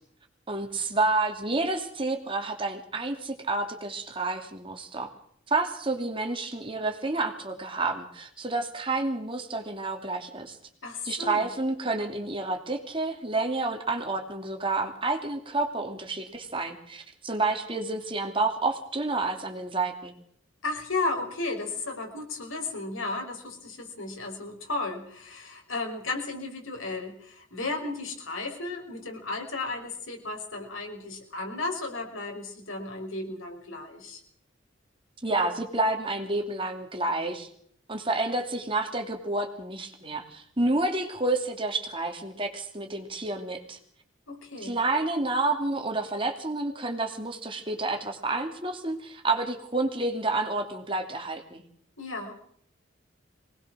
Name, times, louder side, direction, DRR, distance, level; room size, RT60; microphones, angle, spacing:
voice 1, 0.5-5.1 5.5-10.6 11.0-20.1 35.2-37.5 37.9-43.8 44.6-51.6, right 2 dB, 25° right, 4 dB, 2.7 m, -29 dB
voice 2, 10.8-11.5 20.6-34.2 44.3-44.8 52.0-52.3, left 3 dB, 85° left, 2 dB, 5.4 m, -34 dB
23.5 x 19.5 x 6.3 m, 0.64 s
head